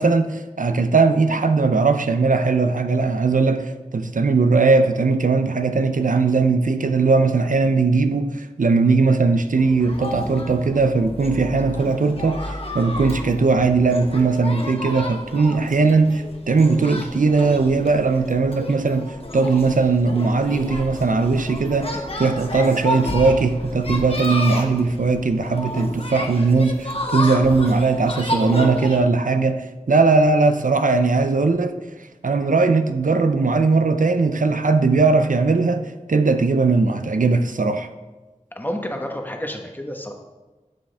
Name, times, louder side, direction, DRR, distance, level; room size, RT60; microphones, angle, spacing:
voice 1, 0.0-12.4 12.7-31.8 32.2-37.9, right 4 dB, 80° right, 8 dB, 0.5 m, -19 dB
sound 1, 9.6-29.0, left 1 dB, 45° left, 1.2 m, -31 dB
voice 2, 38.5-40.1, equal, 15° left, 2 dB, 1.2 m, -29 dB
11.5 x 6.1 x 3.5 m, 1.2 s
wide cardioid pair, 50°, 13 cm